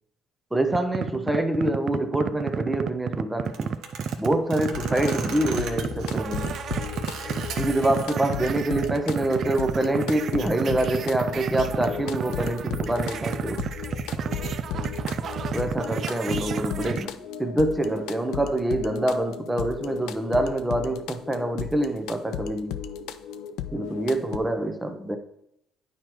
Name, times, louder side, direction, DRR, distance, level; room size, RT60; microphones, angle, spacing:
voice 1, 0.5-3.8 4.2-6.6 7.6-13.6 15.5-22.8 23.7-25.2, right 1 dB, 10° right, 0.8 m, -26 dB
sound 1, 0.7-17.0, right 7 dB, 50° right, 0.3 m, -31 dB
sound 2, 3.5-8.1 8.4-9.2, right 5 dB, 70° right, 0.9 m, -39 dB
sound 3, 4.7-24.4, left 8 dB, 80° left, 0.4 m, -35 dB
9.6 x 4.5 x 3.0 m
cardioid pair, 105°, 0 cm